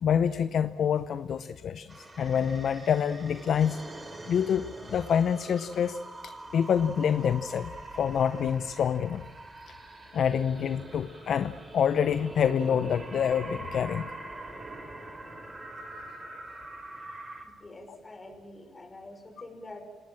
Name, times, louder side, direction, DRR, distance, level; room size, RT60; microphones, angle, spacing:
voice 1, 0.0-3.8 4.3-9.3 9.7-9.8 10.1-14.1 17.9-18.0, left 8 dB, 60° left, 12 dB, 0.7 m, -27 dB
sound 1, 1.9-17.4, right 2 dB, 25° right, 4.4 m, -44 dB
voice 2, 17.4-19.8, left 2 dB, 25° left, 5 dB, 5.8 m, -46 dB
28.5 x 18.5 x 7.5 m, 1.2 s
cardioid pair, 90°, 0 cm